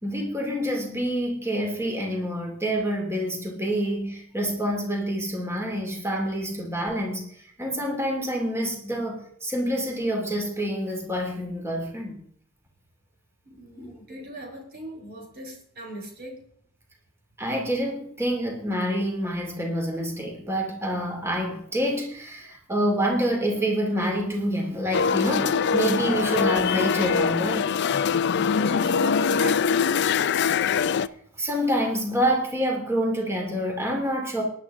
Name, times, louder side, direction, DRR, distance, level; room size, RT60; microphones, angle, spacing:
voice 1, 0.0-7.3 7.6-12.2 13.8-13.9 17.4-27.7 31.4-34.4, equal, 10° right, 1 dB, 2.5 m, -27 dB
voice 2, 13.5-16.4 28.5-29.7, equal, 45° right, 1 dB, 3.9 m, -39 dB
sound 1, 24.9-31.1, left 6 dB, 55° left, 0.4 m, -23 dB
18.0 x 11.0 x 3.6 m, 0.64 s
head